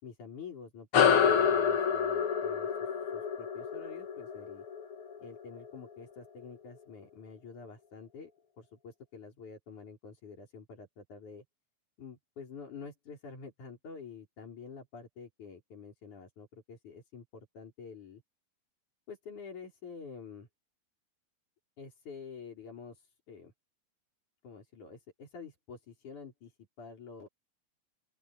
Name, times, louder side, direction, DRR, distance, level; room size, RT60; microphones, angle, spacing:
voice 1, 0.0-4.6 5.2-8.3 8.6-11.4 12.0-18.2 19.1-20.5 21.8-23.5 24.4-27.3, left 5 dB, 90° left, 6.7 m, -48 dB
sound 1, 0.9-5.8, left 7 dB, 50° left, 2.3 m, -28 dB
open air
omnidirectional pair, 3.4 m